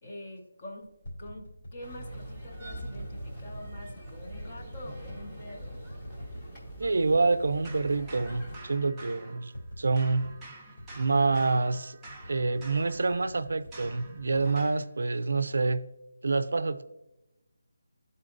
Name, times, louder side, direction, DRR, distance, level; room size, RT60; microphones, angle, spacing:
voice 1, 0.0-0.9 1.2-5.7, left 1 dB, 30° left, 1.0 m, -45 dB
sound 1, 0.8-2.1 3.1-3.8 4.2-5.3 5.7-6.5 7.0-7.7 8.0-8.1 8.3-9.1 9.5-10.4 10.8-11.5 12.0-15.2 15.6-16.0, equal, 60° left, 2.0 m, -47 dB
sound 2, 1.8-8.6, right 1 dB, 15° left, 1.0 m, -42 dB
voice 2, 6.8-9.5 9.8-10.3 11.0-12.0 12.3-15.9 16.2-16.8, right 3 dB, 70° right, 0.4 m, -27 dB
sound 3, 7.6-9.7 10.0-14.9, right 2 dB, 5° right, 0.6 m, -49 dB
11.5 x 4.1 x 2.5 m
figure-of-eight pair, 170°, 0 cm